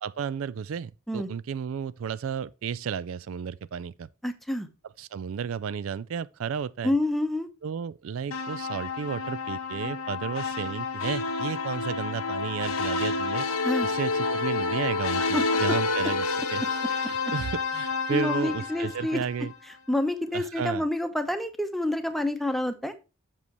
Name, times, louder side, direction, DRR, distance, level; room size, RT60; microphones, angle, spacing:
voice 1, 0.0-4.1 5.0-6.9 7.6-13.5 13.8-19.5 20.3-20.8, right 7 dB, 70° right, 0.4 m, -33 dB
voice 2, 4.2-4.7 6.8-7.5 13.6-13.9 15.2-15.6 18.1-19.2 19.9-22.9, left 1 dB, ahead, 0.8 m, -28 dB
sound 1, 8.3-19.5, left 4 dB, 85° left, 1.1 m, -29 dB
7.4 x 6.9 x 3.0 m
head